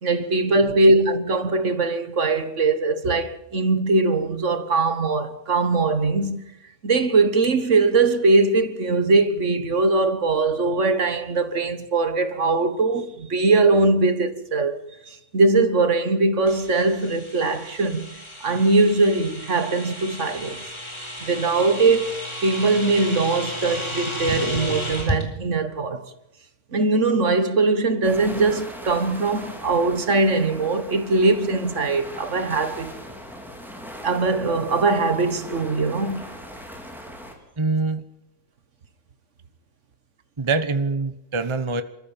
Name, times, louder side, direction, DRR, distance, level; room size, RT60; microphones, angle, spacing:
voice 1, 0.0-6.4 6.8-14.8 15.1-18.1 18.4-20.6 21.2-22.1 22.4-26.0 26.7-33.0 34.0-36.2, right 3 dB, 55° right, 1.7 m, -21 dB
sound 1, 16.5-25.2, equal, 20° left, 4.0 m, -33 dB
sound 2, 28.0-37.4, equal, ahead, 4.0 m, -39 dB
voice 2, 37.6-38.0 40.4-41.8, right 3 dB, 20° right, 1.0 m, -24 dB
27.5 x 14.0 x 9.0 m
omnidirectional pair, 1.6 m